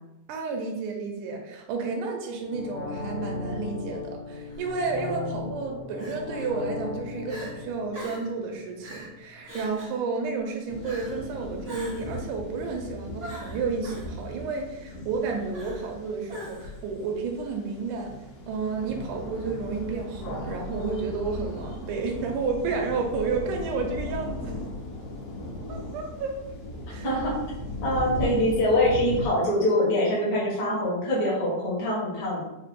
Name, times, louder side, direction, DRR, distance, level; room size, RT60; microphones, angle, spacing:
voice 1, 0.3-18.1 18.5-24.5 25.7-26.3 26.9-27.1, right 4 dB, 80° right, 1 dB, 2.0 m, -31 dB
sound 1, 2.4-9.3 9.6-9.7, left 3 dB, 90° left, 1.5 m, -36 dB
Crying sobbing, 4.5-4.7 6.0-6.5 6.9-7.0 7.3-7.5 7.9-8.3 8.8-9.1 9.4-10.0 10.8-11.2 11.6-12.2 13.2-14.1 15.5-16.0 16.3-16.8, equal, 65° right, 0.6 m, -42 dB
sound 2, 10.7-29.3, left 1 dB, 70° left, 2.4 m, -37 dB
voice 2, 27.0-27.4 27.8-32.4, left 1 dB, 50° left, -6 dB, 1.1 m, -24 dB
5.5 x 2.0 x 3.5 m, 0.93 s
omnidirectional pair, 3.7 m